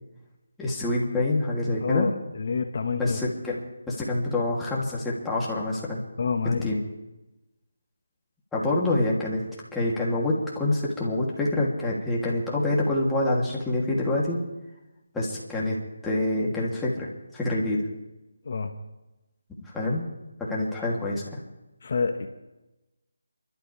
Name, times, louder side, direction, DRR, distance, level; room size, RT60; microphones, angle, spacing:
voice 1, 0.6-2.1 3.0-6.0 6.6-6.8 8.5-9.4 9.7-14.4 15.1-15.8 16.0-17.8 19.7-20.1 20.4-21.4, left 2 dB, 5° left, -6 dB, 3.0 m, -26 dB
voice 2, 1.8-3.2 6.2-6.8 18.4-18.7 21.8-22.3, left 4 dB, 50° left, 5 dB, 1.5 m, -27 dB
29.0 x 12.5 x 3.5 m, 1.0 s
figure-of-eight pair, 160°, 0 cm